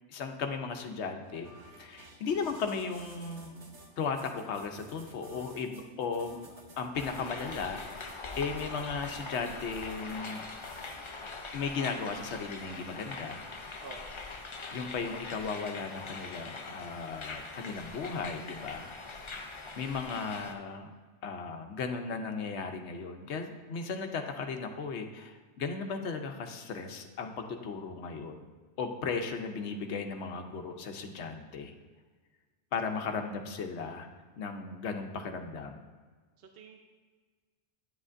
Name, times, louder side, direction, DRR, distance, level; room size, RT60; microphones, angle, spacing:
voice 1, 0.1-1.5 1.8-3.7 4.0-6.5 6.8-10.5 11.5-13.5 14.7-19.0 19.4-20.9 21.2-28.5 28.8-31.7 32.7-34.1 34.4-35.8, left 5 dB, 80° left, 5 dB, 1.0 m, -36 dB
sound 1, 1.2-11.2, right 2 dB, 90° right, 1.4 m, -54 dB
sound 2, 6.9-20.5, left 3 dB, 35° left, 0.5 m, -42 dB
voice 2, 13.8-14.1 36.4-36.9, right 4 dB, 65° right, 4 dB, 0.8 m, -49 dB
9.7 x 8.6 x 2.5 m, 1.4 s
omnidirectional pair, 1.1 m